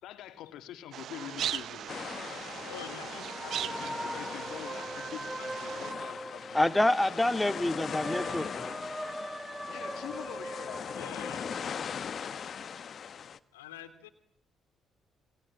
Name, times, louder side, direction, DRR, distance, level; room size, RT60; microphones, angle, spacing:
voice 1, 0.0-2.0 2.9-6.9 7.2-7.3 9.7-11.7, left 11 dB, 70° left, 9 dB, 2.7 m, -46 dB
sound 1, 0.9-5.9, right 10 dB, 60° right, 1.1 m, -39 dB
sound 2, 1.9-13.4, left 7 dB, 50° left, 1.6 m, -40 dB
sound 3, 2.2-7.2 7.6-12.3, right 1 dB, 5° right, 1.9 m, -41 dB
voice 2, 2.7-3.5 4.3-4.4 4.6-4.7 9.3-9.4 10.9-11.4 13.5-14.1, left 11 dB, 85° left, 9 dB, 2.5 m, -47 dB
voice 3, 6.5-8.8, left 1 dB, 10° left, 9 dB, 2.3 m, -27 dB
28.0 x 24.0 x 8.8 m, 0.67 s
hypercardioid pair, 45°, 0 cm